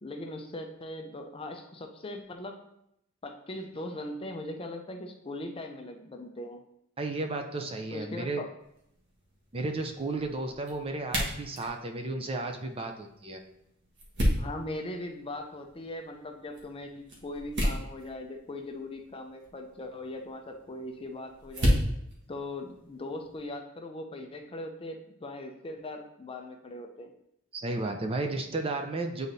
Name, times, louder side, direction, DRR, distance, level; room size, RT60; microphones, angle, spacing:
voice 1, 0.0-2.7 3.2-6.6 7.9-8.5 14.4-21.8 22.3-27.1, left 1 dB, 25° left, 4 dB, 0.5 m, -40 dB
voice 2, 7.0-8.4 9.5-13.4 27.5-29.3, right 2 dB, 25° right, 4 dB, 0.5 m, -33 dB
sound 1, 8.6-23.5, equal, 55° right, 1.4 m, -35 dB
9.0 x 3.9 x 2.7 m, 0.79 s
head